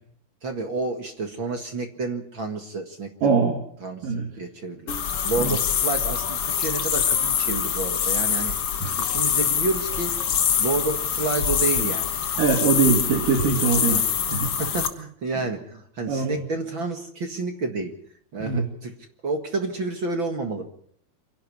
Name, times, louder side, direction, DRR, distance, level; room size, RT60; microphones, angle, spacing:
voice 1, 0.4-3.4 3.8-5.0 5.2-8.5 9.1-10.1 10.6-12.1 13.9-14.0 14.6-17.9 18.3-18.9 19.2-20.7, right 3 dB, 40° right, 5 dB, 1.9 m, -29 dB
voice 2, 3.2-3.6 4.0-4.3 5.4-5.5 8.8-9.0 12.4-14.0 14.3-14.5 16.1-16.4 18.4-18.6, right 5 dB, 65° right, 3 dB, 4.0 m, -22 dB
sound 1, 4.9-14.9, left 8 dB, 55° left, 1.9 m, -24 dB
26.5 x 11.5 x 9.9 m, 0.65 s
omnidirectional pair, 4.3 m